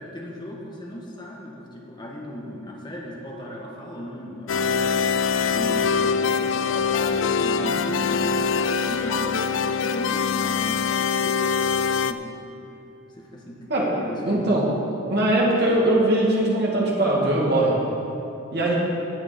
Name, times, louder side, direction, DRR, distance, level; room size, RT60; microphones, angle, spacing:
voice 1, 0.0-4.9 5.4-8.5 8.8-11.4 11.9-12.3 13.1-14.6, equal, 20° left, -2 dB, 1.5 m, -37 dB
sound 1, 4.5-12.1, left 6 dB, 65° left, 0.4 m, -23 dB
voice 2, 14.3-14.6 15.1-17.7 18.5-18.8, right 1 dB, 50° right, -4 dB, 2.5 m, -21 dB
17.0 x 7.0 x 5.3 m, 2.8 s
head